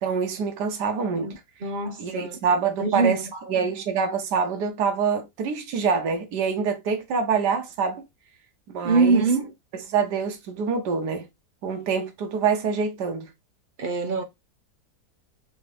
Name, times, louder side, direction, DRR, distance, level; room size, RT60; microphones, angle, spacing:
voice 1, 0.0-1.3 2.0-3.2 3.5-8.0 8.7-9.2 9.9-11.3 11.6-13.3, right 6 dB, 85° right, 1.4 m, -25 dB
voice 2, 1.6-3.5 8.8-9.5 13.8-14.2, right 4 dB, 55° right, 0.5 m, -24 dB
4.0 x 2.8 x 3.1 m
omnidirectional pair, 1.7 m